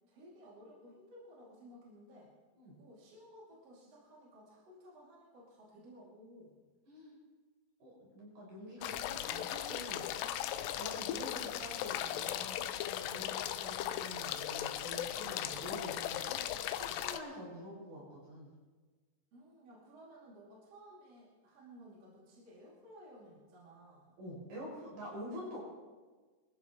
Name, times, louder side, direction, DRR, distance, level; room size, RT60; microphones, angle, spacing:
voice 1, 0.1-2.3 2.8-6.6 19.3-24.1, equal, 40° right, -5 dB, 3.5 m, -56 dB
voice 2, 6.9-7.2 7.8-18.5 24.2-25.6, equal, 65° right, -5 dB, 7.8 m, -47 dB
sound 1, 8.8-17.2, left 11 dB, 90° left, 2.8 m, -38 dB
23.0 x 14.5 x 3.1 m, 1.4 s
omnidirectional pair, 4.7 m